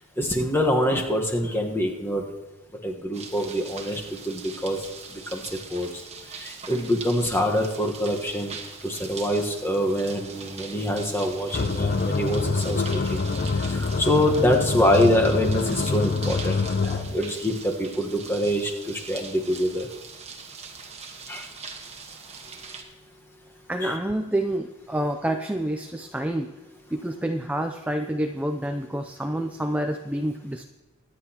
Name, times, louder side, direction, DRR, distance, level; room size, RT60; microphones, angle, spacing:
voice 1, 0.2-2.2 2.8-6.0 6.3-8.6 8.8-13.2 13.6-19.9 21.3-21.5 23.8-23.9, equal, 10° left, 1 dB, 1.2 m, -25 dB
sound 1, 3.1-22.8, right 5 dB, 30° right, 1.3 m, -41 dB
sound 2, 11.5-17.2, left 4 dB, 40° left, 0.5 m, -26 dB
voice 2, 23.7-26.5 26.9-30.6, right 1 dB, 5° right, 5 dB, 0.4 m, -28 dB
23.5 x 10.0 x 2.9 m, 1.1 s
head